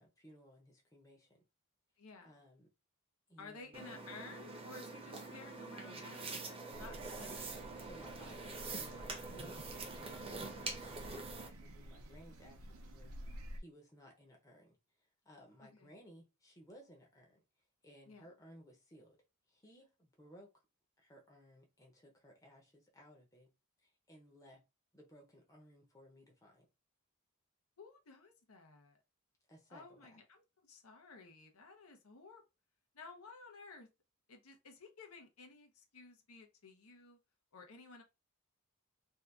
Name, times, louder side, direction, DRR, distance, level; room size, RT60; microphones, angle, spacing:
voice 1, 0.0-1.4 2.2-2.7 3.3-3.7 5.8-6.0 7.7-14.8 15.2-17.4 17.8-19.2 19.5-20.5 21.0-23.5 23.8-24.6 24.9-26.7 29.5-30.2, equal, 15° left, 0.7 m, -60 dB
voice 2, 2.0-2.4 3.4-6.5 6.7-7.6 15.6-15.9 18.1-18.3 27.8-29.0 29.7-32.4 32.9-33.9 34.3-37.2 37.5-38.0, left 4 dB, 80° left, 0.8 m, -55 dB
sound 1, 3.7-11.5, right 3 dB, 25° right, 0.6 m, -45 dB
sound 2, 6.7-13.6, right 1 dB, 70° right, 0.6 m, -51 dB
2.7 x 2.3 x 3.4 m
head